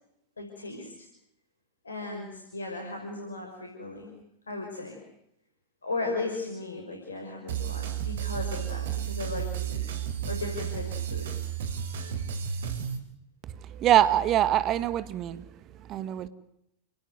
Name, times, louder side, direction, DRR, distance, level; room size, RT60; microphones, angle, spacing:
voice 1, 0.4-1.1 1.8-4.2 4.5-5.0 5.8-9.9 10.3-11.3, left 3 dB, 75° left, 5.8 m, -36 dB
sound 1, 7.5-13.0, right 9 dB, 60° right, 3.7 m, -32 dB
voice 2, 13.7-15.4 15.9-16.3, right 12 dB, 35° right, 1.7 m, -24 dB
30.0 x 19.0 x 9.5 m
figure-of-eight pair, 90°, 0 cm